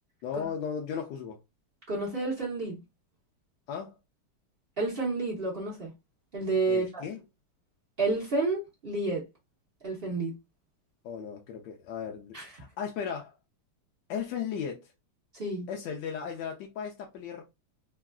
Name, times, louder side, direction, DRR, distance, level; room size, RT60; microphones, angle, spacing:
voice 1, 0.2-1.4 3.7-3.9 6.7-7.2 11.0-13.3 14.1-14.9 15.7-17.4, left 7 dB, 75° left, 1.0 m, -36 dB
voice 2, 1.9-2.8 4.8-5.9 6.3-7.0 8.0-9.3 9.8-10.3 12.3-12.5 15.3-15.7, right 3 dB, 55° right, 0.6 m, -30 dB
3.5 x 2.4 x 2.3 m
omnidirectional pair, 2.4 m